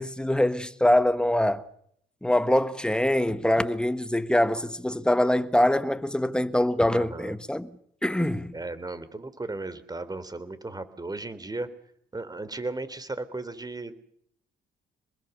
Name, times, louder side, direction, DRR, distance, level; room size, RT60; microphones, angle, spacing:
voice 1, 0.0-1.7 2.2-7.7 8.0-8.5, left 1 dB, 5° left, 1.6 m, -24 dB
voice 2, 6.8-7.4 8.5-11.7 12.1-13.9, right 2 dB, 20° right, 3.3 m, -35 dB
27.0 x 20.5 x 6.7 m
cardioid pair, 90°, 20 cm